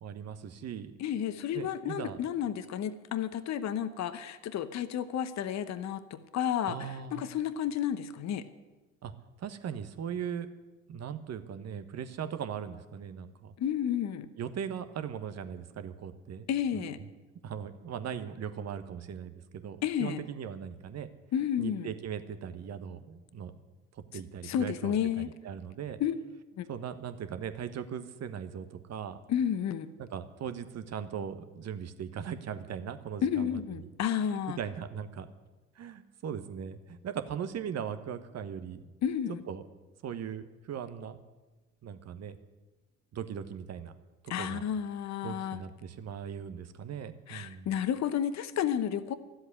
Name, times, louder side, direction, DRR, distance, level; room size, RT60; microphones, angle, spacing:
voice 1, 0.0-0.9 1.5-2.2 6.7-7.3 9.0-9.1 9.4-10.5 10.9-13.5 14.4-16.5 16.7-16.8 17.4-21.1 21.6-23.6 23.9-26.0 26.7-29.2 30.0-33.9 34.3-35.3 35.8-38.9 39.5-39.6 40.0-41.2 41.8-42.4 43.1-43.9 44.4-44.6 45.2-47.7, right 8 dB, 40° right, 10 dB, 1.2 m, -39 dB
voice 2, 1.0-8.5 13.6-14.3 16.5-17.0 19.8-20.2 21.3-21.9 24.1-25.3 26.0-26.1 26.6-26.7 29.3-29.9 33.2-34.6 39.0-39.4 44.3-45.6 47.3-49.1, left 9 dB, 40° left, 12 dB, 1.0 m, -31 dB
13.0 x 8.0 x 9.7 m, 1.2 s
hypercardioid pair, 65°, 40 cm